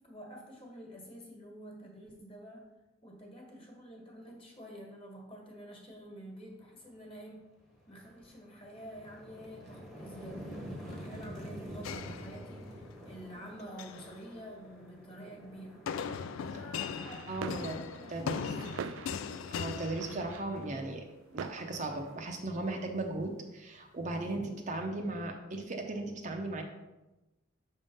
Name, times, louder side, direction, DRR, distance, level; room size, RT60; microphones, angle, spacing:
voice 1, 0.0-2.7 3.0-7.5 7.9-15.9 16.5-18.9, equal, 30° left, -1 dB, 1.4 m, -48 dB
sound 1, 6.9-7.1 7.5-18.3, equal, ahead, 1.0 m, -48 dB
sound 2, 11.8-12.9 13.6-14.1 15.9-20.7, left 6 dB, 80° left, 0.3 m, -39 dB
sound 3, 16.0-22.4, right 7 dB, 75° right, 0.3 m, -46 dB
voice 2, 17.3-17.8 18.1-18.5 19.5-21.0 21.3-26.6, right 2 dB, 40° right, 3 dB, 0.6 m, -37 dB
6.4 x 3.6 x 5.4 m, 1.0 s
head